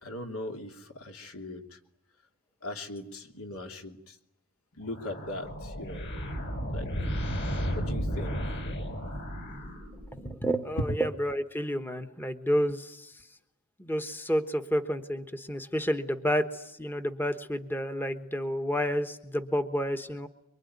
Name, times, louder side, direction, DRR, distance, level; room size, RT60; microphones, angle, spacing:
voice 1, 0.0-1.8 2.6-4.1 4.7-6.3 6.7-6.9 7.7-8.4, left 2 dB, 70° left, 4 dB, 3.0 m, -40 dB
sound 1, 4.8-10.3, equal, 55° left, 6.3 m, -33 dB
voice 2, 10.1-13.1 13.8-20.3, equal, 10° left, 7 dB, 1.2 m, -30 dB
24.5 x 24.0 x 9.6 m, 0.81 s
head